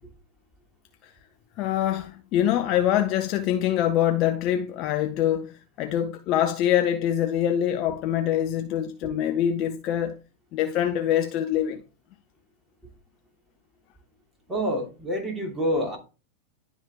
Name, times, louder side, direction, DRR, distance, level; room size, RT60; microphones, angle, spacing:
voice 1, 1.6-5.5 5.8-10.2 10.5-11.8, left 11 dB, 40° left, 0.6 m, -24 dB
voice 2, 14.5-16.0, equal, 5° right, 2.7 m, -27 dB
11.0 x 3.7 x 3.5 m
figure-of-eight pair, 90°, 0 cm